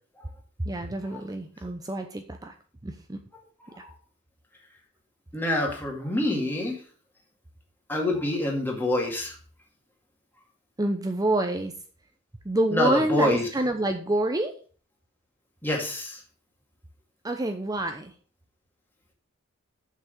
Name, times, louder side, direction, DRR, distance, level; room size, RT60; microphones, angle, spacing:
voice 1, 0.6-2.5 2.8-3.2 10.8-11.7 12.4-14.5 17.2-18.1, right 1 dB, 15° right, 5 dB, 0.7 m, -27 dB
voice 2, 5.3-6.8 7.9-9.4 12.7-13.5 15.6-16.2, left 1 dB, 10° left, -1 dB, 2.1 m, -26 dB
7.1 x 6.1 x 6.5 m, 0.41 s
head